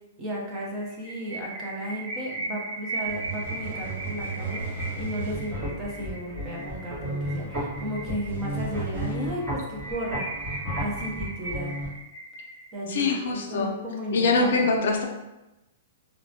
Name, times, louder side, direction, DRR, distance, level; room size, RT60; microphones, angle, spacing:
voice 1, 0.2-10.3 10.8-11.7 12.7-14.7, equal, 15° right, -3 dB, 0.4 m, -34 dB
sound 1, 0.8-8.8 9.1-9.2 9.5-9.6 9.8-13.0, right 2 dB, 5° left, 1.0 m, -37 dB
sound 2, 3.0-5.6 8.2-9.2, right 4 dB, 70° right, 0.8 m, -35 dB
sound 3, 5.2-11.9, equal, 35° right, 1.4 m, -34 dB
voice 2, 12.9-13.7 14.1-15.0, left 3 dB, 55° left, 2 dB, 0.4 m, -23 dB
2.9 x 2.1 x 2.7 m, 0.98 s
hypercardioid pair, 180°, 0 cm